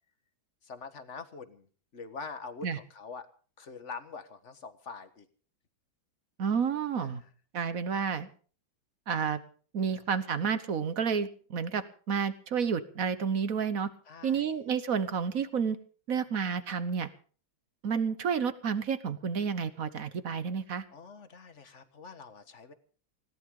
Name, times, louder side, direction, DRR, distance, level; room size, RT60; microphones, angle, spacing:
voice 1, 0.6-1.7 1.9-3.3 3.6-5.3 7.0-7.3 9.9-10.0 14.0-14.5 20.9-22.7, left 5 dB, 40° left, 10 dB, 1.6 m, -44 dB
voice 2, 6.4-7.2 7.5-8.3 9.1-9.4 9.7-13.9 14.2-15.8 16.1-17.1 17.8-20.8, right 6 dB, 50° right, 13 dB, 1.3 m, -30 dB
20.5 x 17.5 x 3.8 m, 0.42 s
omnidirectional pair, 2.1 m